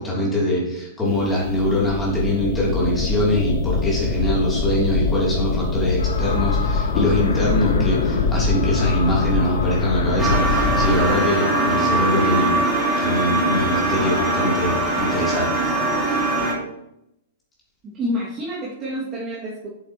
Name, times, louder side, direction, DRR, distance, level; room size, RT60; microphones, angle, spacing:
voice 1, 0.0-12.5 13.0-15.7, left 1 dB, 15° left, -5 dB, 3.3 m, -23 dB
sound 1, 1.1-11.0, left 4 dB, 50° left, 1.1 m, -23 dB
sound 2, 6.0-15.8, left 4 dB, 75° left, 1.2 m, -34 dB
sound 3, 10.2-16.5, right 2 dB, 10° right, 2.2 m, -21 dB
voice 2, 17.8-19.7, equal, 25° right, -7 dB, 2.5 m, -28 dB
7.8 x 7.6 x 3.1 m, 0.84 s
hypercardioid pair, 110°, 0 cm